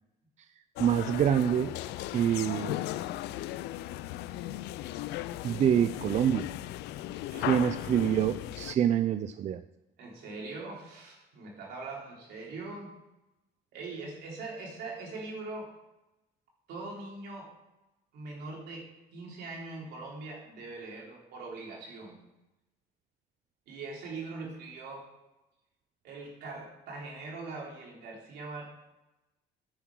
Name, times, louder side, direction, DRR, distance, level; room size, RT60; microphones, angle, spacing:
sound 1, 0.8-8.7, left 14 dB, 85° left, 0.5 m, -37 dB
voice 1, 0.8-1.7 2.1-2.8 5.4-6.5 7.4-9.6, right 9 dB, 45° right, 12 dB, 0.4 m, -26 dB
voice 2, 10.0-12.9 13.7-15.7 16.7-17.5 18.1-22.2 23.7-25.1 26.0-28.6, right 3 dB, 75° right, -2 dB, 3.5 m, -42 dB
10.5 x 6.2 x 6.0 m, 0.99 s
cardioid pair, 110°, 17 cm